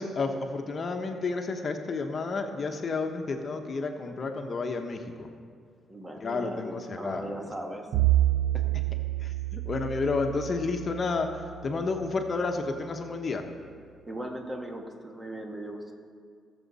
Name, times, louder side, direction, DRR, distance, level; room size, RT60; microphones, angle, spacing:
voice 1, 0.0-5.3 6.2-7.5 9.2-13.4, left 3 dB, 40° left, 4 dB, 1.1 m, -31 dB
voice 2, 5.9-7.9 8.5-8.6 14.1-15.9, right 1 dB, 20° right, 2 dB, 1.6 m, -38 dB
Bowed string instrument, 7.9-12.1, right 15 dB, 80° right, 0.5 m, -28 dB
18.5 x 7.2 x 4.2 m, 2.1 s
cardioid pair, 90°, 0 cm